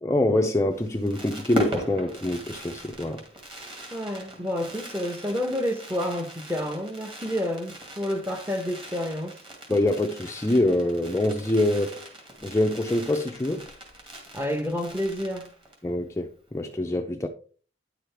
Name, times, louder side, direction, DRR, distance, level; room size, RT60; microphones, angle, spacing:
voice 1, 0.0-3.2 9.7-12.0 12.4-13.7 15.8-17.3, left 1 dB, 15° left, 0.5 m, -25 dB
Fireworks, 0.7-15.9 16.2-16.3 16.5-16.8, equal, 30° right, 2.2 m, -39 dB
voice 2, 3.9-9.3 14.3-15.5, left 1 dB, 15° right, 0.9 m, -29 dB
9.7 x 6.1 x 3.4 m
head